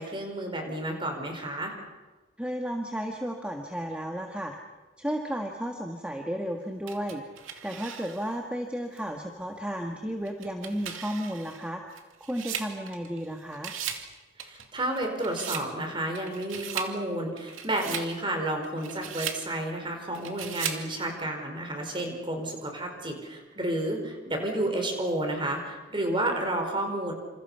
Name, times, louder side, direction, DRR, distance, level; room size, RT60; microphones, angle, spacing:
voice 1, 0.0-1.7 14.4-27.1, right 1 dB, 25° right, 3 dB, 5.1 m, -31 dB
voice 2, 2.4-4.5 5.0-11.8 12.2-13.7, equal, 5° right, 2 dB, 1.6 m, -33 dB
sound 1, 6.9-8.4 9.0-9.1 10.3-13.3 13.5-14.1 14.4-15.7 16.1-16.9 17.4-18.1 18.6-19.4 20.1-20.9, right 8 dB, 85° right, 2.6 m, -37 dB
28.5 x 27.5 x 5.7 m, 1.2 s
head